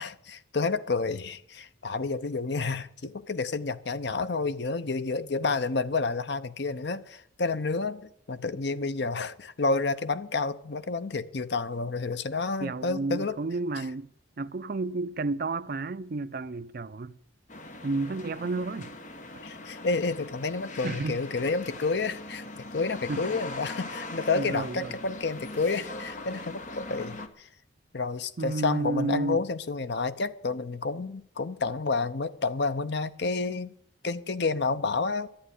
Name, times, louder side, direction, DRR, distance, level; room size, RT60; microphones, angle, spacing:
voice 1, 0.0-13.4 19.4-27.5 27.9-33.7 34.0-35.3, left 3 dB, 55° left, 0.7 m, -30 dB
voice 2, 12.6-14.1 14.4-17.2 17.8-18.9 20.8-21.2 23.1-23.2 24.3-24.9 28.4-29.4, right 3 dB, 50° right, 0.5 m, -31 dB
sound 1, 17.5-27.3, left 2 dB, 40° left, 1.1 m, -41 dB
11.5 x 9.8 x 9.9 m
head